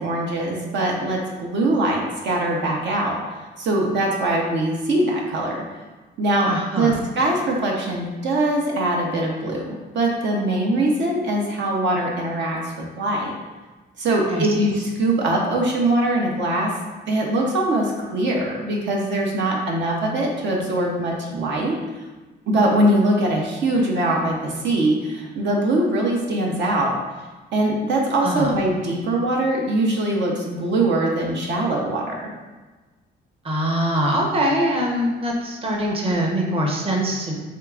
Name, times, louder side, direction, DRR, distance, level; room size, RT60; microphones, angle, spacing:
voice 1, 0.0-3.2 3.6-5.6 6.2-12.6 13.0-13.4 14.0-16.7 17.1-21.8 22.5-27.0 27.5-32.3, right 1 dB, 65° right, -1 dB, 0.7 m, -22 dB
voice 2, 6.5-6.9 14.3-14.7 28.2-28.5 33.4-37.3, equal, 30° right, -1 dB, 0.8 m, -23 dB
4.5 x 3.4 x 2.4 m, 1.2 s
cardioid pair, 90°, 20 cm